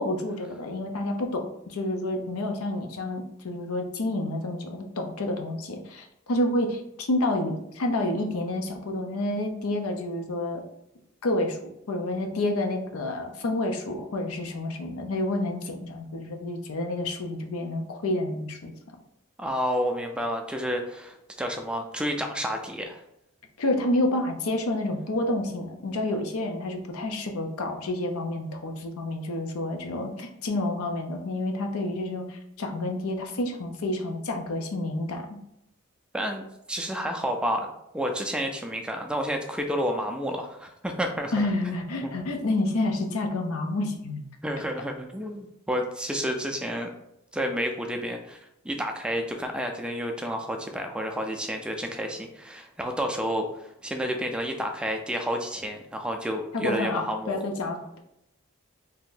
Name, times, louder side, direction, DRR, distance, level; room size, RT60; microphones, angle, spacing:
voice 1, 0.0-10.6 11.2-18.7 23.6-35.4 41.3-44.3 56.5-58.0, left 1 dB, 85° left, 4 dB, 0.6 m, -29 dB
voice 2, 19.4-23.0 36.1-37.7 37.9-41.5 42.0-42.1 44.4-46.9 47.3-48.4 48.6-57.4, equal, 5° right, 3 dB, 0.3 m, -30 dB
2.8 x 2.5 x 3.7 m, 0.81 s
head